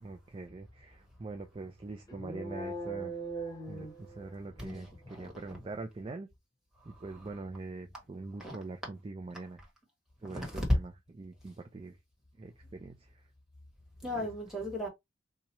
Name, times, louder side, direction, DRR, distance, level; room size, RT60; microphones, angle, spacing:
voice 1, 0.0-3.2 3.7-6.3 6.8-9.7 10.2-12.0 12.4-13.3 14.1-14.3, right 3 dB, 25° right, 0.3 m, -43 dB
sound 1, 2.1-4.6, right 2 dB, 20° left, 0.7 m, -40 dB
voice 2, 4.6-5.3 8.4-8.6 10.6-10.7 14.0-14.9, left 1 dB, ahead, 1.4 m, -37 dB
2.9 x 2.3 x 4.1 m
head